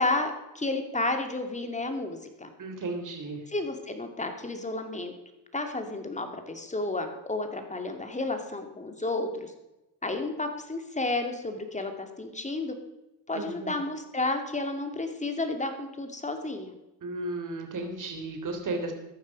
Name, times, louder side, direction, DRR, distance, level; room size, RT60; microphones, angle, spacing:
voice 1, 0.0-2.5 3.5-5.1 5.5-9.5 10.0-12.8 13.3-16.7, left 2 dB, 15° left, 6 dB, 2.5 m, -31 dB
voice 2, 2.6-3.4 13.3-13.7 17.0-18.9, right 2 dB, 40° right, 5 dB, 3.6 m, -34 dB
14.0 x 10.5 x 5.4 m, 0.96 s
supercardioid pair, 90°, 45 cm